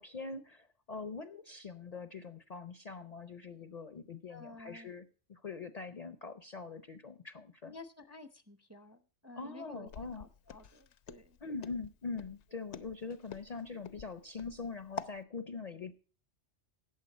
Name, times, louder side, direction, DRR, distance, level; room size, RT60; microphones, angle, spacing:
voice 1, 0.0-7.7 9.4-10.2 11.4-16.0, left 4 dB, 45° left, 12 dB, 0.6 m, -43 dB
voice 2, 4.3-4.9 7.6-11.4, left 2 dB, 15° right, 10 dB, 0.6 m, -52 dB
Walk footsteps, 9.9-15.2, left 6 dB, 80° left, 1.0 m, -47 dB
14.0 x 8.9 x 4.1 m, 0.36 s
omnidirectional pair, 1.2 m